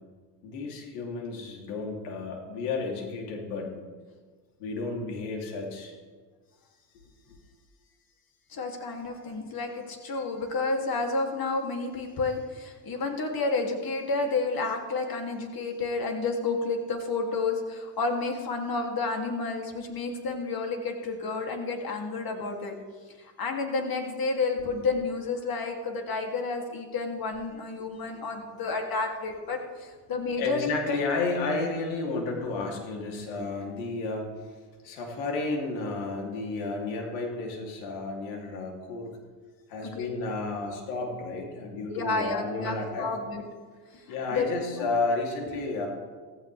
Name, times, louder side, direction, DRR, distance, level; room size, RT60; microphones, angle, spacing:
voice 1, 0.4-3.7 4.6-5.9 7.3-7.4 30.4-34.6 34.8-39.1 39.7-43.1 44.1-45.9, left 3 dB, 80° left, 0 dB, 3.3 m, -32 dB
voice 2, 8.5-22.7 23.2-31.0 39.8-40.1 41.9-43.4 43.9-44.0 44.3-44.9, left 3 dB, 45° left, 2 dB, 3.0 m, -30 dB
16.0 x 15.5 x 3.5 m, 1.5 s
supercardioid pair, 75°, 49 cm